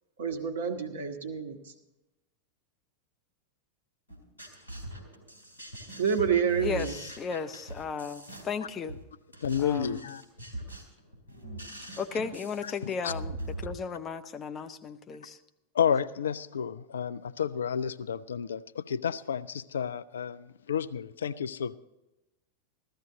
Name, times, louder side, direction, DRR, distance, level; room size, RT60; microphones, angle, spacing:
voice 1, 0.2-1.7 6.0-7.0, right 7 dB, 60° right, 6 dB, 1.4 m, -28 dB
sound 1, 4.1-13.7, right 1 dB, 80° left, 3.2 m, -41 dB
voice 2, 6.6-9.0 9.6-10.0 12.0-15.4, left 5 dB, 25° left, 9 dB, 0.8 m, -35 dB
voice 3, 9.4-10.2 13.0-13.1 15.7-21.8, left 8 dB, 65° left, 13 dB, 0.4 m, -31 dB
15.0 x 13.5 x 4.0 m, 0.97 s
figure-of-eight pair, 90°, 0 cm